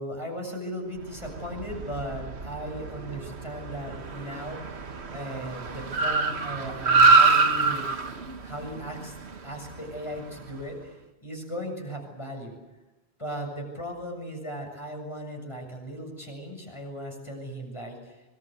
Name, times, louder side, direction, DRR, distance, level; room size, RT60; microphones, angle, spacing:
voice 1, 0.0-4.6 5.1-7.9 8.4-9.2 9.4-12.6 13.2-18.2, equal, 25° left, 2 dB, 7.2 m, -37 dB
Car, 1.1-10.6, right 4 dB, 85° right, 1.7 m, -26 dB
24.5 x 24.0 x 8.3 m, 1.1 s
omnidirectional pair, 1.1 m